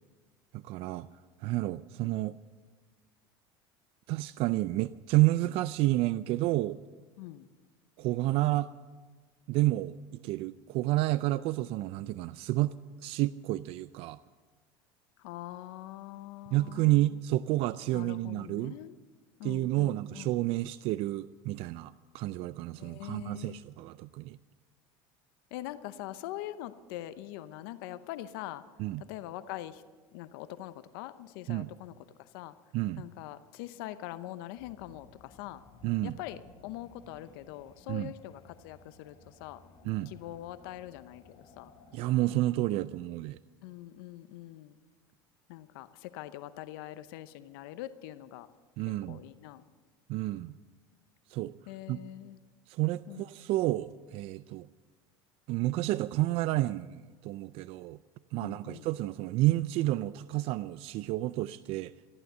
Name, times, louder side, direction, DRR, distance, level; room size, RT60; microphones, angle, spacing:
voice 1, 0.5-1.1 1.4-2.4 4.1-6.8 8.0-8.7 9.5-10.0 10.2-12.7 13.0-14.2 16.5-18.7 19.4-24.4 28.8-29.0 31.5-31.7 32.7-33.0 35.8-36.2 37.9-38.1 39.8-40.1 41.9-43.4 48.8-49.2 50.1-50.5 51.3-51.5 51.9-52.0 52.7-54.7 55.5-58.0 58.3-61.9, right 17 dB, 60° right, 15 dB, 0.4 m, -30 dB
voice 2, 7.2-7.5 15.2-17.2 17.9-19.0 19.4-20.3 22.8-23.6 25.5-28.6 29.0-29.8 30.1-32.5 33.0-35.6 36.0-39.6 40.1-41.7 43.6-44.8 45.5-48.5 48.9-49.6 51.7-52.4 53.1-53.3 58.4-58.9, left 14 dB, 80° left, 13 dB, 0.7 m, -43 dB
sound 1, 34.6-42.4, left 4 dB, 50° left, 4.2 m, -58 dB
14.0 x 12.0 x 7.9 m, 1.4 s
supercardioid pair, 115°, 12 cm